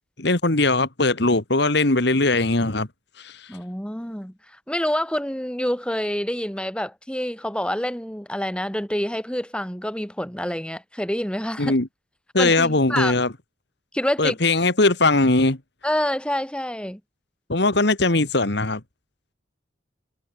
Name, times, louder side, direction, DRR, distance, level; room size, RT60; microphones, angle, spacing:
voice 1, 0.2-2.9 3.2-3.5 11.6-11.9 12.3-13.3 14.2-15.6 17.5-18.8, left 2 dB, 60° left, 2.0 m, -20 dB
voice 2, 3.5-4.3 4.7-11.7 12.4-13.1 13.9-14.4 15.8-17.0, equal, 5° left, 3.9 m, -27 dB
head